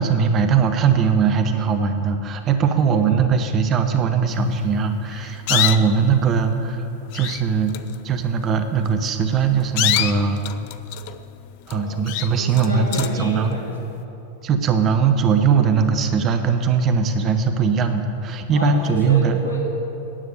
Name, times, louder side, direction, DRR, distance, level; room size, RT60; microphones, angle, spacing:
voice 1, 0.0-6.8 7.1-7.7 8.0-10.4 11.7-13.6 14.4-19.4, right 6 dB, 30° right, 7 dB, 1.0 m, -20 dB
sound 1, 5.0-6.1 6.8-6.9 7.1-7.4 7.7-8.0 8.9-9.1 9.6-11.3 11.7-11.8 12.1-13.2, left 14 dB, 45° left, 0.5 m, -25 dB
voice 2, 12.3-14.0 18.5-19.7, left 1 dB, 75° left, -2 dB, 2.8 m, -30 dB
10.0 x 8.0 x 9.0 m, 3.0 s
figure-of-eight pair, 90°, 0 cm